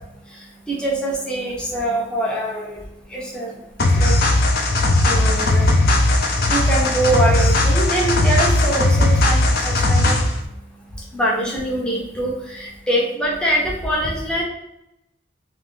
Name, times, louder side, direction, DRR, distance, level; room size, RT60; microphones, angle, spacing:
voice 1, 0.7-2.8 3.1-3.6 4.0-4.1 5.0-5.7 6.5-10.2 11.1-14.4, right 1 dB, 5° left, -4 dB, 0.7 m, -23 dB
sound 1, 3.8-10.4, left 2 dB, 50° left, 0.5 m, -17 dB
2.8 x 2.7 x 3.6 m, 0.86 s
head